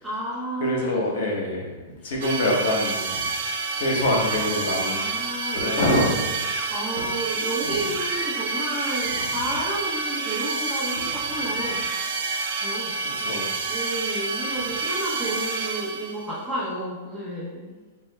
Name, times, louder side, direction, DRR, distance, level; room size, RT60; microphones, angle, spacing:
voice 1, 0.0-1.3 2.0-2.2 4.9-6.3 6.7-11.9 12.5-17.8, right 1 dB, ahead, -10 dB, 1.0 m, -32 dB
voice 2, 0.6-1.7 2.0-3.2 3.8-5.0 5.6-6.2 13.2-13.5, left 1 dB, 70° left, -2 dB, 1.2 m, -24 dB
sound 1, 2.2-16.3, right 4 dB, 70° right, 0.6 m, -28 dB
sound 2, 5.5-6.7 7.9-9.4 11.3-12.6, right 5 dB, 25° right, 0.4 m, -37 dB
4.4 x 4.3 x 2.2 m, 1.3 s
supercardioid pair, 165°, 0 cm